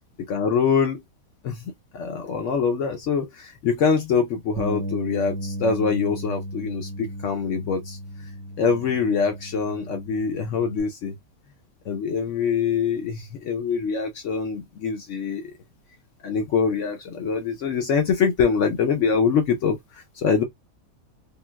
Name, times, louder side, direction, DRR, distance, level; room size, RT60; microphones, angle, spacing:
voice 1, 0.3-1.0 1.4-8.0 8.6-11.2 11.9-15.5 16.2-20.4, left 6 dB, 70° left, 0.7 m, -24 dB
Bass guitar, 4.6-10.8, equal, 75° right, 1.1 m, -34 dB
3.6 x 2.3 x 2.2 m
omnidirectional pair, 1.9 m